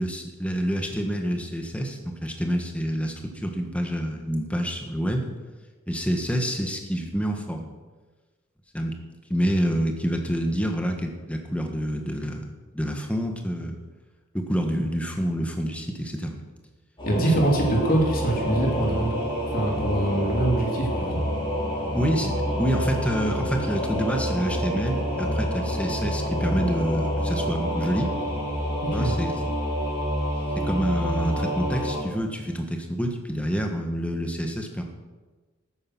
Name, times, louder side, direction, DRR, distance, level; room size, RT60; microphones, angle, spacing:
voice 1, 0.0-5.3 5.9-7.7 8.7-9.0 9.3-12.4 12.7-13.8 14.3-16.4 17.4-17.5 21.9-28.1 28.9-29.3 30.5-34.8, equal, 5° left, 3 dB, 1.4 m, -27 dB
Singing / Musical instrument, 17.0-32.0, equal, 25° left, 4.8 m, -27 dB
voice 2, 17.1-19.1 19.5-21.2 28.8-29.1, right 1 dB, 45° left, -1 dB, 3.1 m, -24 dB
13.0 x 9.7 x 6.1 m, 1.3 s
head